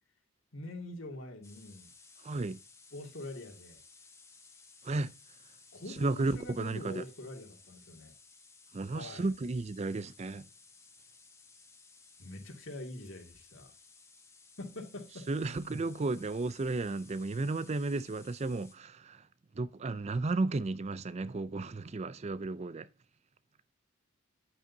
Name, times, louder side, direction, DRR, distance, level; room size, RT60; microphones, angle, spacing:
voice 1, 0.5-1.9 2.9-3.8 5.7-8.1 8.9-9.3 12.2-13.7 14.6-15.3, left 2 dB, 65° left, 2.3 m, -44 dB
sound 1, 1.4-18.8, left 4 dB, 15° left, 1.2 m, -58 dB
voice 2, 2.2-2.6 4.8-5.1 5.9-7.0 8.7-10.5 15.3-19.3 19.6-22.9, right 3 dB, 30° right, 0.4 m, -33 dB
9.3 x 8.8 x 2.7 m
head